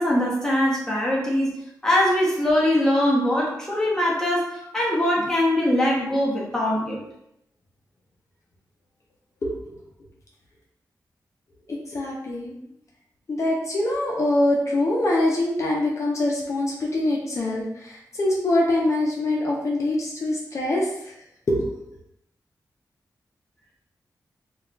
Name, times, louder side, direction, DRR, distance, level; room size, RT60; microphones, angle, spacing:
voice 1, 0.0-1.6 1.8-7.0, left 1 dB, 5° left, -5 dB, 0.7 m, -22 dB
voice 2, 9.4-9.7 11.7-12.6 13.3-20.9 21.5-21.7, left 1 dB, 45° left, -3 dB, 0.5 m, -24 dB
2.3 x 2.2 x 3.7 m, 0.77 s
wide cardioid pair, 150°, 7 cm